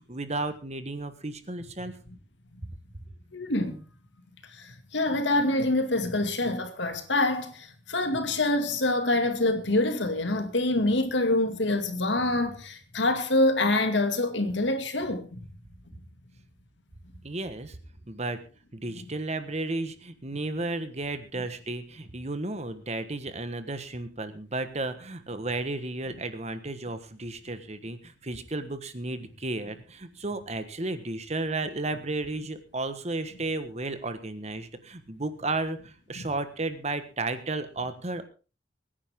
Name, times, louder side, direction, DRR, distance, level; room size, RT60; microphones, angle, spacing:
voice 1, 0.1-1.9 17.2-17.8 18.1-18.4 18.7-38.2, right 2 dB, 35° right, 1.4 m, -33 dB
voice 2, 3.3-3.8 4.5-15.5 36.2-36.3, left 2 dB, 80° left, 2.3 m, -26 dB
23.5 x 10.0 x 3.7 m
head